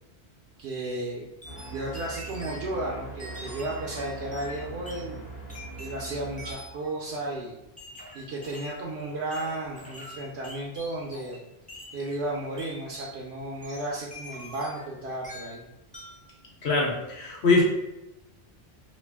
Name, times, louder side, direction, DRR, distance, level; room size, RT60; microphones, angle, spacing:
voice 1, 0.6-1.3 1.6-5.3 5.8-7.5 8.1-11.4 11.9-15.6, right 2 dB, 80° right, -2 dB, 0.8 m, -34 dB
sound 1, 1.4-6.5, right 2 dB, 45° left, 0.9 m, -41 dB
sound 2, 1.4-2.7 3.2-5.1 5.5-6.9 7.8-8.8 9.3-11.4 11.7-12.0 12.6-13.2 13.6-14.9 15.2-15.6 15.9-16.3, left 1 dB, 10° left, 0.4 m, -44 dB
voice 2, 16.6-17.6, left 3 dB, 75° left, -2 dB, 1.1 m, -23 dB
3.0 x 2.5 x 3.4 m, 0.92 s
omnidirectional pair, 1.1 m